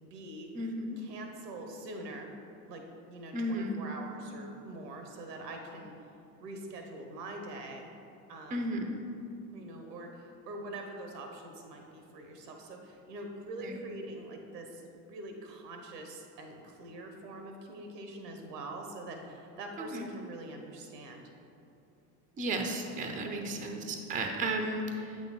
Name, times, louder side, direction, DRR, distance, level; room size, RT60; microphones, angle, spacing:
voice 1, 0.0-0.5 1.0-2.3 2.7-5.9 6.4-7.9 8.3-8.7 9.5-21.3 23.3-23.7, right 2 dB, 75° right, 3 dB, 1.0 m, -44 dB
voice 2, 0.5-1.0 3.3-3.8 8.5-9.0 13.6-13.8 19.8-20.1 22.4-25.2, right 1 dB, 15° right, 4 dB, 0.6 m, -34 dB
8.2 x 3.8 x 4.0 m, 2.7 s
figure-of-eight pair, 65°, 50 cm